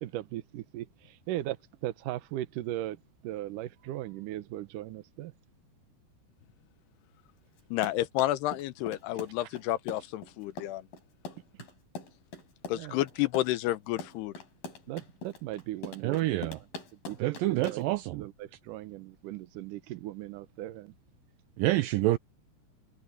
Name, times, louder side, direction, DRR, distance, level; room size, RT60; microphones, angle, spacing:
voice 1, 0.0-5.3 12.7-13.0 14.9-16.7 17.1-17.9 18.1-20.9, right 14 dB, 70° right, 2.2 m, -38 dB
Run, 7.6-18.0, left 2 dB, 60° left, 6.8 m, -43 dB
voice 2, 7.7-10.8 12.7-14.3, left 15 dB, 85° left, 3.0 m, -30 dB
voice 3, 16.0-16.6 17.2-18.2 21.6-22.2, right 17 dB, 85° right, 2.0 m, -27 dB
omnidirectional pair, 4.6 m